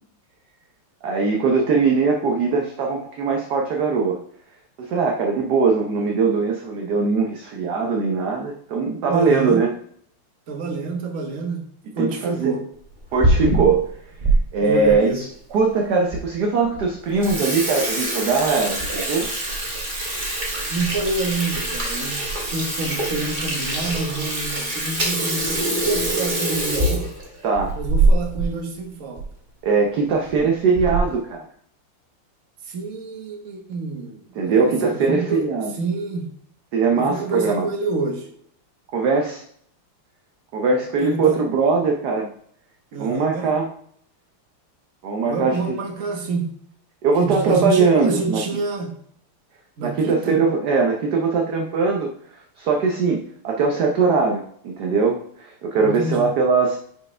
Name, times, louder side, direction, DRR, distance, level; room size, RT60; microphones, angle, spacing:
voice 1, 1.0-4.2 4.8-9.7 12.0-12.5 13.1-13.9 14.5-15.3 15.5-19.3 27.4-27.8 29.6-31.5 34.3-35.7 36.7-37.7 38.9-39.4 40.5-42.3 43.0-43.7 45.0-45.8 47.0-48.4 49.8-52.1 52.6-56.8, right 4 dB, 60° right, 1 dB, 1.2 m, -21 dB
voice 2, 9.1-9.6 10.5-11.6 11.9-12.6 14.6-15.2 20.7-22.2 22.5-27.1 27.7-29.2 32.6-35.4 35.7-36.3 37.0-38.3 41.0-41.4 42.9-43.5 45.3-46.5 47.2-48.9 49.8-50.4 55.8-56.3, right 3 dB, 45° right, 3 dB, 1.4 m, -27 dB
Water tap faucet / Sink (filling or washing), 12.9-14.4 14.8-14.9 15.7-15.8 16.1-16.2 16.6-16.8 17.1-28.5 28.8-28.9 29.2-29.3 30.1-30.4 30.8-31.2, right 2 dB, 25° right, 1.4 m, -24 dB
9.8 x 4.6 x 3.3 m, 0.65 s
omnidirectional pair, 2.4 m